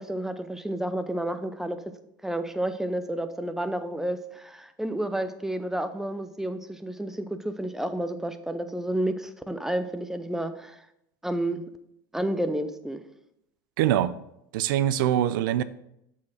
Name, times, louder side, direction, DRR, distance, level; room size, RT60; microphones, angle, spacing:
voice 1, 0.0-1.8 2.2-10.8 11.2-11.6 12.1-13.0, right 1 dB, 5° right, 9 dB, 0.6 m, -30 dB
voice 2, 13.8-14.1 14.5-15.6, right 11 dB, 75° right, 15 dB, 0.4 m, -23 dB
7.2 x 4.2 x 4.8 m, 0.79 s
supercardioid pair, 105°, 11 cm